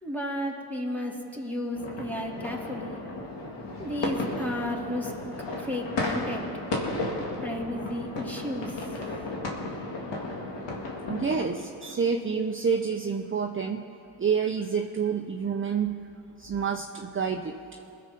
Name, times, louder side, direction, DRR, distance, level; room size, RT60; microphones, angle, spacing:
voice 1, 0.0-3.0 3.6-5.1 5.6-6.5 7.4-8.9, left 1 dB, 5° left, -1 dB, 2.5 m, -33 dB
sound 1, 1.7-11.5, left 2 dB, 75° left, 2.0 m, -34 dB
voice 2, 11.1-13.8 14.2-15.9 16.4-17.5, right 6 dB, 25° right, 4 dB, 0.8 m, -28 dB
21.0 x 7.0 x 5.4 m, 2.6 s
supercardioid pair, 50°, 44 cm